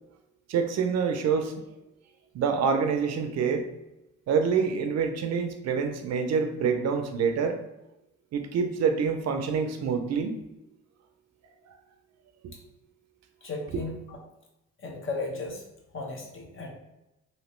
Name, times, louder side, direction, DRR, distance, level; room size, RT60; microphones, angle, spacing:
voice 1, 0.5-1.5 2.3-3.6 4.3-7.6 8.3-10.4 12.4-12.5, right 6 dB, 60° right, 6 dB, 0.5 m, -26 dB
voice 2, 13.4-14.2 14.8-15.6 15.9-16.7, left 3 dB, 45° left, 0 dB, 0.9 m, -35 dB
2.9 x 2.8 x 3.1 m, 0.91 s
cardioid pair, 90°, 30 cm